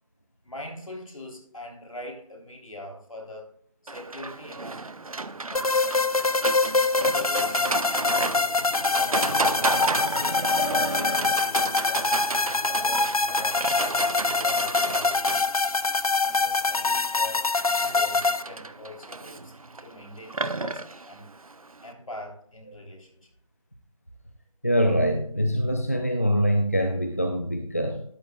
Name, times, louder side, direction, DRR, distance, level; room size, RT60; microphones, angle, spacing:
voice 1, 0.4-3.5 3.8-4.9 5.5-6.4 6.9-8.5 8.9-12.2 12.6-14.0 14.4-15.4 16.2-19.5 19.8-21.3 21.8-23.3, left 1 dB, 70° left, 2 dB, 3.4 m, -42 dB
Livestock farm animals working animals, 3.9-21.9, right 3 dB, 75° right, 0.8 m, -32 dB
sound 1, 5.5-18.4, left 3 dB, 85° left, 0.8 m, -24 dB
voice 2, 24.6-28.0, equal, 25° left, 4 dB, 0.5 m, -24 dB
13.0 x 9.4 x 2.3 m, 0.62 s
figure-of-eight pair, 175°, 18 cm